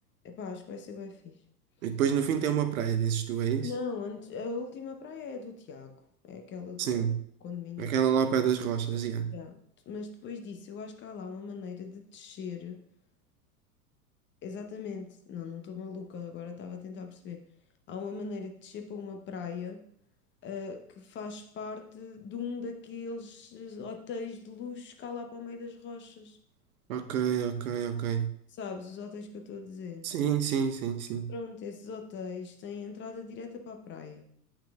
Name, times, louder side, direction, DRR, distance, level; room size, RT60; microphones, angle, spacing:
voice 1, 0.2-1.4 3.6-5.9 6.2-7.0 7.4-8.0 9.3-9.6 9.9-12.8 14.4-17.5 17.9-19.8 20.4-26.4 28.6-30.1 31.3-34.3, left 5 dB, 25° left, 5 dB, 0.7 m, -40 dB
voice 2, 1.8-3.7 6.8-7.2 7.8-9.3 26.9-28.3 30.0-31.3, right 8 dB, 65° right, 8 dB, 0.8 m, -28 dB
8.4 x 5.8 x 2.3 m, 0.66 s
figure-of-eight pair, 90°, 47 cm